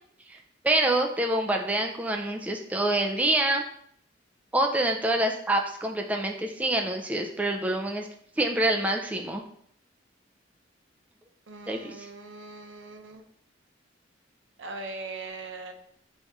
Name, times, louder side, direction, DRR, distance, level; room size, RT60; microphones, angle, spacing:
voice 1, 0.6-3.6 4.5-8.1 8.4-9.4 11.7-12.1, right 1 dB, 10° right, 2 dB, 0.3 m, -26 dB
voice 2, 11.5-13.2 14.6-15.7, right 3 dB, 90° right, 5 dB, 0.6 m, -40 dB
4.1 x 2.4 x 4.5 m, 0.66 s
head